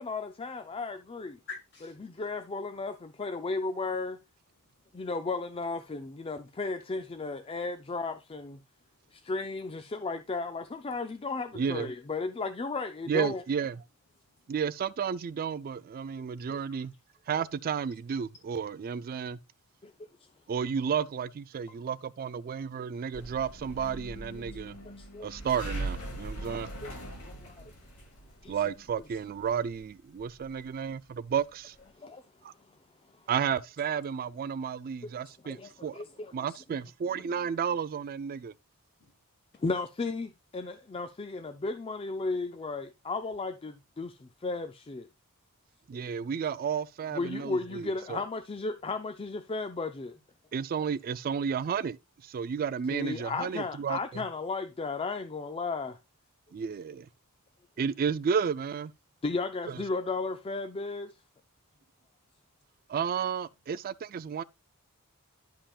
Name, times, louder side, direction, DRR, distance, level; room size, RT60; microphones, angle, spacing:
voice 1, 0.0-1.4 2.0-4.2 4.9-8.6 9.1-13.4 19.8-19.9 24.8-25.3 26.8-26.9 27.2-27.7 28.4-28.6 32.0-32.2 35.0-35.1 35.4-36.3 39.5-45.1 47.1-50.2 52.9-56.0 59.2-61.1, left 3 dB, 25° left, 0.4 m, -34 dB
voice 2, 1.4-2.0 4.6-5.1 8.8-9.2 10.8-10.9 14.2-14.6 20.0-20.1 39.0-39.1, left 4 dB, 50° left, 2.3 m, -49 dB
voice 3, 11.5-11.9 13.1-13.8 14.5-16.9 17.3-19.4 20.5-24.8 25.2-26.7 28.5-31.7 32.4-32.5 33.3-36.0 36.3-38.5 45.9-48.2 50.5-52.0 52.2-54.2 56.5-57.1 57.8-58.9 59.7-59.8 62.9-64.4, right 7 dB, 40° right, 0.3 m, -32 dB
sound 1, 23.1-31.9, right 1 dB, 80° left, 2.5 m, -41 dB
11.5 x 5.5 x 2.3 m
head